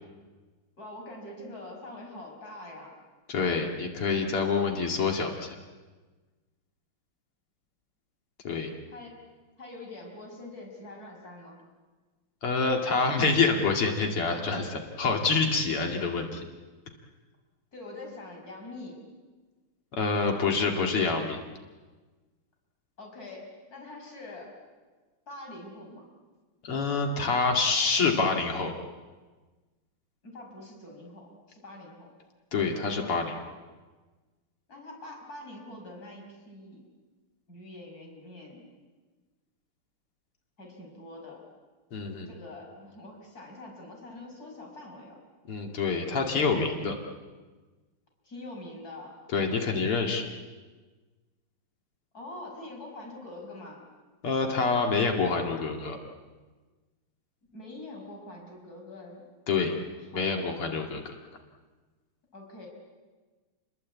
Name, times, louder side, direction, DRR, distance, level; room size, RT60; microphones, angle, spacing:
voice 1, 0.8-2.9 8.9-9.2 9.6-11.6 17.7-19.0 23.0-24.5 25.3-26.0 30.2-32.1 34.7-36.8 37.5-38.7 40.6-41.4 42.3-45.2 48.2-49.1 52.1-53.8 57.5-59.2 60.1-60.6 62.3-62.7, left 2 dB, 40° left, 0 dB, 6.4 m, -44 dB
voice 2, 3.3-5.5 8.4-8.7 12.4-16.5 19.9-21.4 26.6-28.7 32.5-33.4 41.9-42.3 45.5-47.0 49.3-50.2 54.2-56.0 59.5-59.7 60.1-61.1, left 4 dB, 85° left, 2 dB, 3.2 m, -27 dB
30.0 x 21.5 x 8.5 m, 1.3 s
omnidirectional pair, 2.4 m